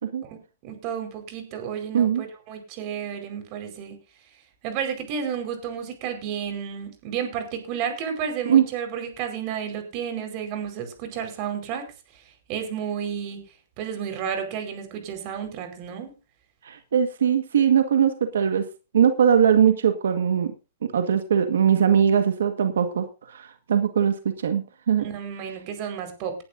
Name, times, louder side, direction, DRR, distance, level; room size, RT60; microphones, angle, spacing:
voice 1, 0.2-4.0 4.6-11.9 12.5-13.4 13.8-16.1 25.0-26.4, right 8 dB, 35° right, 6 dB, 4.8 m, -32 dB
voice 2, 1.9-2.2 8.4-8.7 16.6-18.7 18.9-20.5 20.9-25.1, right 8 dB, 85° right, 7 dB, 1.7 m, -21 dB
19.0 x 11.5 x 2.7 m, 0.31 s
hypercardioid pair, 155°, 0 cm